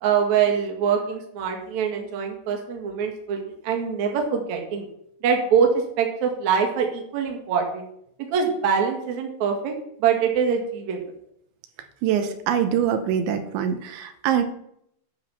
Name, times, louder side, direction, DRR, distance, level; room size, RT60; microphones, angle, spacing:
voice 1, 0.0-4.9 5.2-7.8 8.3-9.7 10.0-11.0, right 7 dB, 55° right, 2 dB, 2.3 m, -24 dB
voice 2, 12.0-14.4, right 9 dB, 85° right, 7 dB, 3.1 m, -24 dB
11.5 x 6.1 x 5.7 m, 0.73 s
omnidirectional pair, 5.4 m